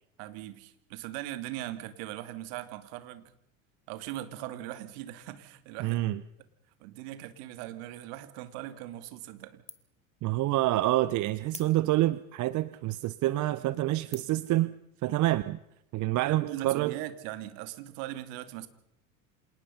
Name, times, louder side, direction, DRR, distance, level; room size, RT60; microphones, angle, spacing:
voice 1, 0.2-3.3 3.9-6.0 6.8-9.6 16.2-18.7, right 14 dB, 60° right, 11 dB, 2.4 m, -40 dB
voice 2, 5.8-6.2 10.2-14.7 15.0-15.6 15.9-16.9, right 16 dB, 45° right, 17 dB, 0.9 m, -27 dB
sound 1, 9.1-9.4 9.7-10.1 10.5-10.6 11.5-12.2 12.8-12.9 13.5-13.7 14.1-14.5, left 4 dB, 15° left, 1.9 m, -47 dB
27.5 x 19.0 x 5.6 m, 0.79 s
hypercardioid pair, 80°, 41 cm